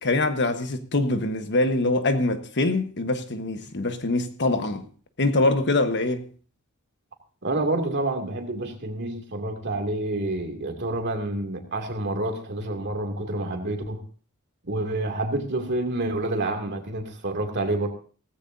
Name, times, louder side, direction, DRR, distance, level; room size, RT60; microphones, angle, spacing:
voice 1, 0.0-4.8 5.2-6.2, left 2 dB, 55° left, 1.3 m, -24 dB
voice 2, 7.4-14.0 14.6-17.9, right 2 dB, 50° right, 2.6 m, -28 dB
17.5 x 15.5 x 2.7 m
head